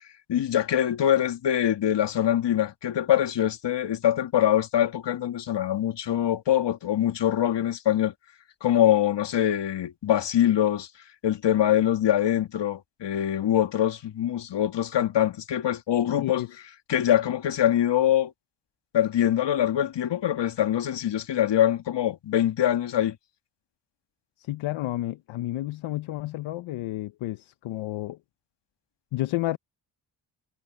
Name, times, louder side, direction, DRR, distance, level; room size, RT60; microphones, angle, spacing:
voice 1, 0.3-8.1 8.6-10.9 11.2-16.4 16.9-18.3 18.9-23.2, left 11 dB, 60° left, 2.1 m, -24 dB
voice 2, 16.2-16.5 24.4-28.2 29.1-29.6, left 16 dB, 75° left, 1.1 m, -31 dB
supercardioid pair, 55°, 47 cm